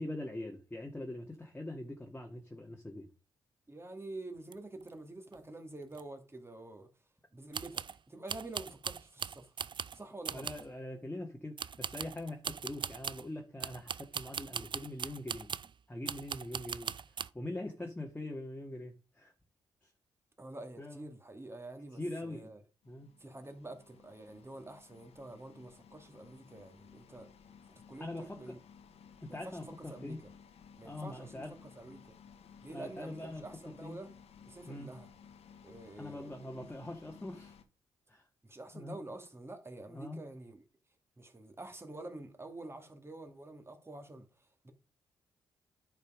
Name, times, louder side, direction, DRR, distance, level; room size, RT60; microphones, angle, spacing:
voice 1, 0.0-3.1 10.3-15.5 15.9-19.3 19.8-19.9 20.8-21.1 21.9-22.5 22.9-23.1 28.0-28.6 29.2-30.2 30.8-31.5 32.7-34.0 34.7-34.9 36.0-37.5 38.1-38.2 38.7-39.0 39.9-40.2, left 1 dB, 15° left, 2.0 m, -43 dB
voice 2, 3.7-6.9 7.3-9.5 9.9-10.5 20.4-22.6 23.2-27.3 27.9-28.6 29.3-29.6 29.9-30.2 30.8-31.4 31.8-32.2 32.6-34.1 34.5-35.1 35.6-36.7 38.4-40.6 41.2-44.7, right 2 dB, 25° right, 2.7 m, -48 dB
sound 1, 4.5-4.6 4.8-4.9 5.3-5.4 5.9-6.0 7.5-8.0 8.3-10.0 10.3-10.7 11.6-13.3 13.6-15.7 16.1-17.3, right 7 dB, 45° right, 0.5 m, -40 dB
sound 2, 22.8-37.6, left 6 dB, 70° left, 1.4 m, -57 dB
10.5 x 5.6 x 5.2 m
supercardioid pair, 50°, 11 cm